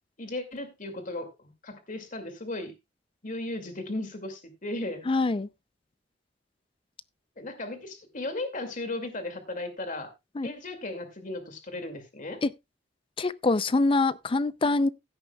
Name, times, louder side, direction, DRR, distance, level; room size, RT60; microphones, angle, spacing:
voice 1, 0.2-2.7 3.2-5.1 7.4-10.1 10.4-12.4, left 2 dB, 45° left, 2.2 m, -36 dB
voice 2, 5.1-5.5 10.4-10.5 12.4-12.5 13.2-14.9, left 3 dB, 30° left, 0.5 m, -24 dB
16.0 x 9.0 x 2.3 m
head